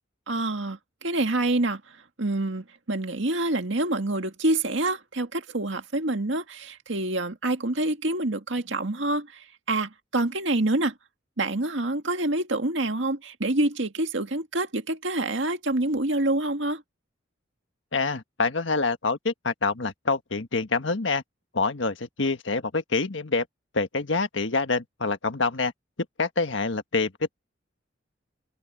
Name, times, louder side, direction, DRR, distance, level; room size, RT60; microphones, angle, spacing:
voice 1, 0.3-10.9 11.4-16.8, right 2 dB, 70° right, 2.0 m, -27 dB
voice 2, 17.9-21.2 21.5-23.4 23.7-25.7 26.2-27.3, left 3 dB, 75° left, 1.5 m, -26 dB
open air
head